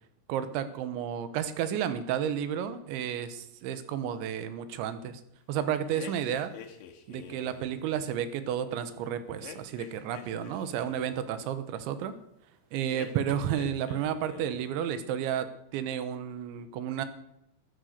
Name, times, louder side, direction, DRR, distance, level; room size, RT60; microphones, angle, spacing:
voice 1, 0.3-5.2 5.5-6.5 7.1-12.1 12.7-15.5 15.7-17.1, right 9 dB, 85° right, 12 dB, 3.4 m, -32 dB
sound 1, 5.9-7.8 9.4-11.2 12.9-14.0 14.3-14.8, left 9 dB, 80° left, 3.7 m, -47 dB
13.5 x 10.0 x 6.6 m, 0.78 s
omnidirectional pair, 5.2 m